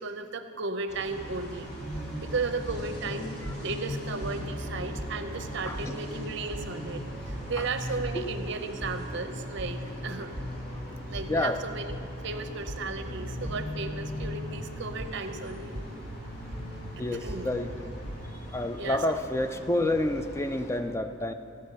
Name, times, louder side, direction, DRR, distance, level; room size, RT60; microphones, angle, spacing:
voice 1, 0.0-1.8 2.2-10.3 11.1-11.9 12.2-15.8 17.1-17.5 18.8-19.0, right 4 dB, 60° right, 8 dB, 0.7 m, -35 dB
sound 1, 0.9-20.8, right 1 dB, 50° left, 2.2 m, -43 dB
sound 2, 1.9-18.3, left 1 dB, 10° right, 1.6 m, -38 dB
voice 2, 5.7-6.0 7.6-8.3 10.7-10.9 11.3-11.6 12.8-12.9 17.0-17.7 18.2-21.3, left 1 dB, 15° left, 8 dB, 0.3 m, -30 dB
14.5 x 5.2 x 6.7 m, 2.6 s
head